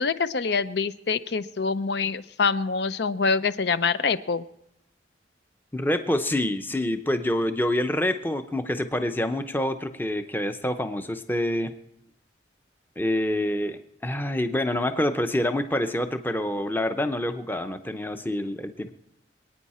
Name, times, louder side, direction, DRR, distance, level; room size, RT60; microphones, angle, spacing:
voice 1, 0.0-4.5, left 5 dB, 60° left, 14 dB, 0.6 m, -25 dB
voice 2, 5.7-11.7 13.0-18.9, left 1 dB, 10° left, 9 dB, 0.7 m, -27 dB
25.5 x 9.3 x 4.3 m, 0.80 s
head